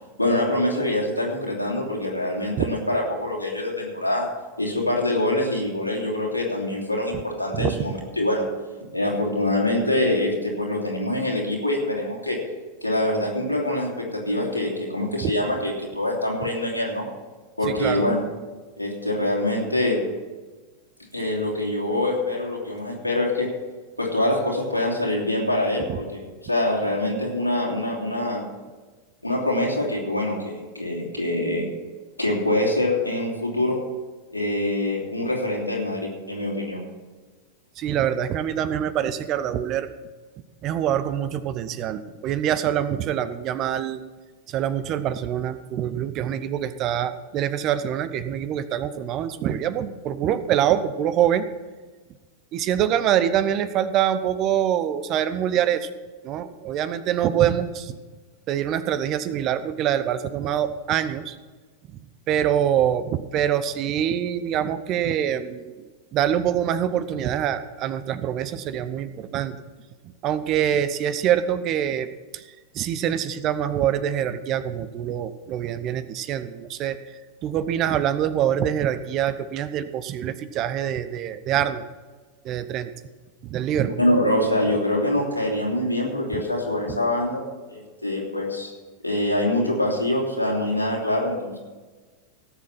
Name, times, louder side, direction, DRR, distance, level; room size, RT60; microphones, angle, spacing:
voice 1, 0.2-4.3 4.6-8.4 8.9-12.4 12.8-17.1 17.6-18.2 18.8-20.0 21.1-23.5 24.0-28.4 29.2-31.7 32.2-33.8 34.3-36.8 84.0-87.4 87.7-88.7 89.0-91.6, left 1 dB, 90° left, -2 dB, 3.1 m, -24 dB
voice 2, 17.7-18.0 37.8-39.9 40.6-44.0 44.5-51.5 52.5-55.9 56.2-57.9 58.5-61.3 62.3-65.8 66.1-69.6 70.2-72.1 72.3-72.4 72.7-77.0 77.4-81.9 82.4-82.9 83.4-83.9, right 10 dB, 35° right, 14 dB, 0.8 m, -25 dB
17.5 x 7.5 x 6.0 m, 1.3 s
figure-of-eight pair, 90°, 0 cm